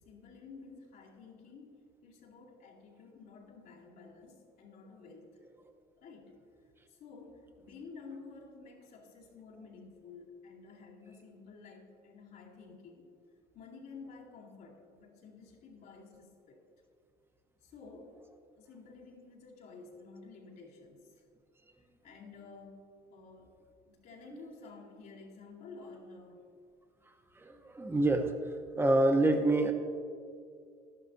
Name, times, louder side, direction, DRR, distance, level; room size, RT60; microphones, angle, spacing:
voice 1, 0.1-1.8 2.0-5.3 6.0-6.3 6.9-13.0 13.5-16.6 17.6-18.1 18.5-21.2 22.0-23.5 23.9-26.4, left 4 dB, 70° left, -5 dB, 2.5 m, -52 dB
voice 2, 27.4-28.3 28.8-29.7, right 2 dB, 15° right, 5 dB, 1.0 m, -26 dB
12.5 x 11.5 x 2.7 m, 2.3 s
cardioid pair, 110°, 17 cm